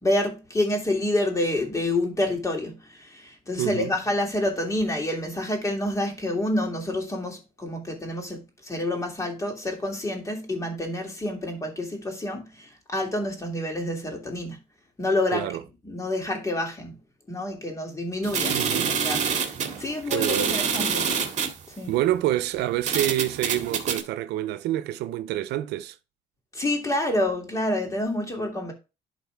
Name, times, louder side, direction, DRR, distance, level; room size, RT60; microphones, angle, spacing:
voice 1, 0.0-14.6 15.0-15.5 15.8-16.9 17.3-19.4 19.8-21.1 21.8-21.9 26.5-28.7, left 1 dB, 20° left, 2.9 m, -28 dB
voice 2, 3.6-3.9 15.3-15.6 18.5-19.0 20.1-20.6 21.9-26.0, right 14 dB, 80° right, 0.6 m, -27 dB
sound 1, 18.2-21.6 22.3-22.4 22.8-24.0, right 6 dB, 45° right, 2.0 m, -26 dB
11.5 x 4.1 x 3.5 m
cardioid pair, 110°, 17 cm